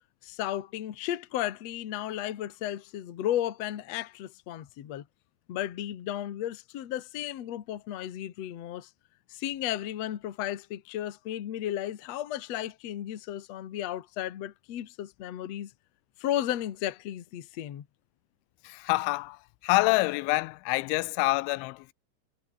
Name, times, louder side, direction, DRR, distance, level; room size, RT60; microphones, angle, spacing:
voice 1, 0.2-5.1 5.5-8.9 9.3-15.7 16.2-17.8, left 12 dB, 60° left, 1.7 m, -34 dB
voice 2, 18.6-21.9, left 23 dB, 85° left, 2.9 m, -27 dB
omnidirectional pair, 5.4 m